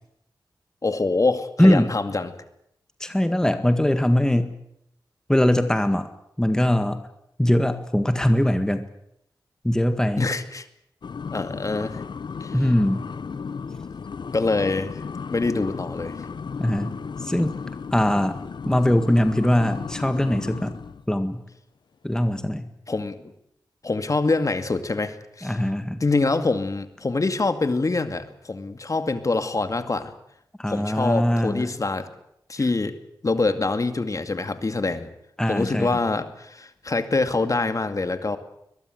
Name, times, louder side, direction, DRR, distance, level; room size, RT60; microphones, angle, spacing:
voice 1, 0.8-2.3 10.2-10.7 11.3-12.0 12.4-12.5 14.3-15.0 15.3-16.2 22.9-23.2 23.8-25.6 26.0-30.1 30.7-32.1 32.5-33.0 33.2-35.1 35.5-38.4, left 3 dB, 45° left, 9 dB, 2.3 m, -25 dB
voice 2, 1.6-1.9 3.0-4.5 5.3-6.1 6.4-7.0 7.4-8.8 9.6-10.3 12.5-13.0 16.6-16.9 17.2-17.5 17.9-18.4 18.7-20.7 21.1-21.4 22.0-22.7 25.4-26.0 30.6-31.7 35.4-36.0, left 1 dB, 10° left, 9 dB, 1.7 m, -21 dB
sound 1, 11.0-21.1, left 5 dB, 70° left, 0.8 m, -34 dB
22.0 x 21.5 x 8.0 m, 0.78 s
cardioid pair, 65°, 8 cm